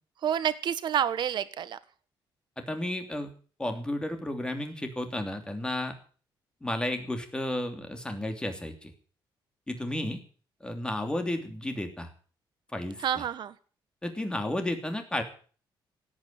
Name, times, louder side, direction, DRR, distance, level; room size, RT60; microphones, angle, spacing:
voice 1, 0.2-1.8 13.0-13.5, right 9 dB, 60° right, 13 dB, 1.4 m, -28 dB
voice 2, 2.6-3.3 3.6-5.9 6.6-8.9 9.7-10.2 10.6-12.1 12.7-13.2 14.0-15.2, left 1 dB, 10° left, 6 dB, 2.9 m, -32 dB
17.0 x 8.9 x 8.7 m, 0.42 s
cardioid pair, 145°, 9 cm